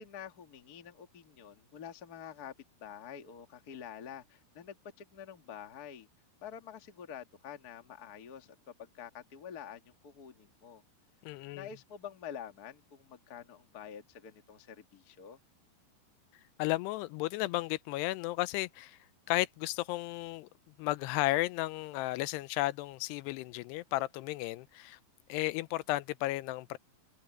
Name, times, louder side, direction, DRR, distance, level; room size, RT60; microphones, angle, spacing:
voice 1, 0.0-2.5 2.8-6.1 6.4-10.8 11.5-15.4, left 8 dB, 45° left, 1.2 m, -47 dB
voice 2, 11.3-11.7 16.6-19.0 19.3-20.5 20.8-25.0 25.3-26.8, left 18 dB, 85° left, 2.7 m, -33 dB
omnidirectional pair, 4.8 m